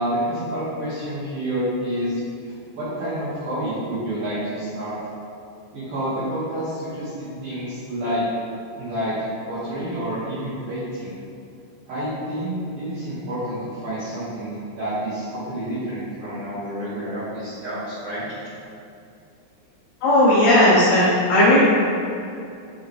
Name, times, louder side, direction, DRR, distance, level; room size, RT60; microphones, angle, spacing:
voice 1, 0.0-2.2 2.8-5.0 5.7-8.3 8.8-11.1 11.9-18.2, right 1 dB, 55° right, -14 dB, 3.2 m, -28 dB
voice 2, 20.0-21.6, left 1 dB, 75° left, -8 dB, 2.3 m, -15 dB
9.7 x 5.6 x 3.3 m, 2.6 s
omnidirectional pair, 5.9 m